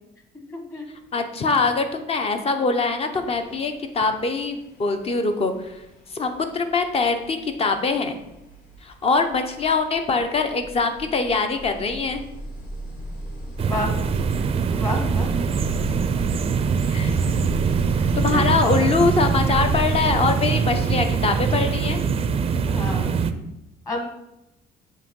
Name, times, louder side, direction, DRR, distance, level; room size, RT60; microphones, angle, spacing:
voice 1, 0.5-0.8 13.7-13.9 14.7-15.3 18.0-18.9 22.7-23.2 23.9-24.1, left 1 dB, 20° left, 3 dB, 1.4 m, -31 dB
voice 2, 1.1-5.8 6.1-8.2 8.8-12.3 16.9-17.2 18.2-22.0, left 4 dB, 35° left, 7 dB, 0.8 m, -23 dB
sound 1, 2.6-2.8 3.1-20.4, right 1 dB, 50° left, 2.6 m, -37 dB
sound 2, 13.6-23.3, right 6 dB, 35° right, 0.4 m, -23 dB
7.5 x 2.9 x 5.3 m, 0.91 s
cardioid pair, 110°, 17 cm